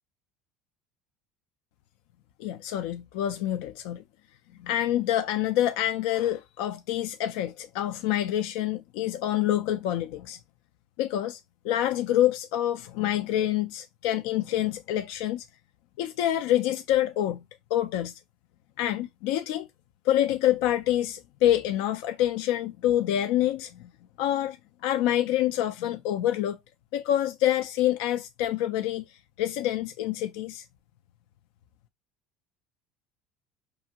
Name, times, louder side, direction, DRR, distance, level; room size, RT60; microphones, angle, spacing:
voice 1, 2.4-4.0 4.6-10.4 11.0-15.5 16.0-17.4 17.7-18.2 18.8-19.7 20.0-23.9 24.2-24.6 24.8-26.6 26.9-30.6, left 12 dB, 75° left, 0.4 m, -27 dB
5.4 x 2.4 x 2.8 m
supercardioid pair, 110°, 0 cm